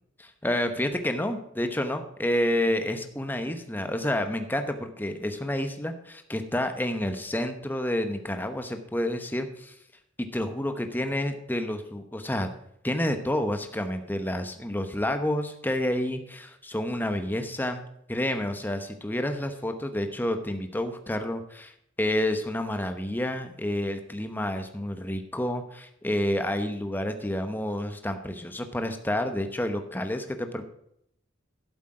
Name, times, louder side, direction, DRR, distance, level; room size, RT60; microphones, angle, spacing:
voice 1, 0.4-9.7 10.2-12.5 12.8-17.8 18.1-21.7 22.0-30.6, left 1 dB, 10° left, 7 dB, 1.0 m, -29 dB
11.5 x 8.2 x 4.9 m, 0.75 s
head